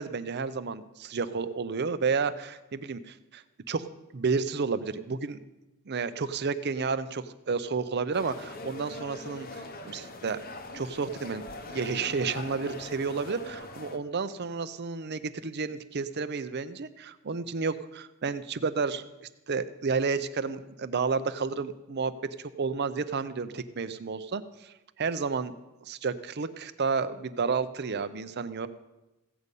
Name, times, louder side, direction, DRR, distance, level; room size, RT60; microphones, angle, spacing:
voice 1, 0.0-3.9 4.1-5.4 5.9-10.4 10.7-22.1 22.6-25.5 25.8-28.7, right 5 dB, 50° right, 13 dB, 0.6 m, -31 dB
sound 1, 8.1-14.0, left 2 dB, 45° left, 0.8 m, -42 dB
15.5 x 5.3 x 8.2 m, 1.0 s
head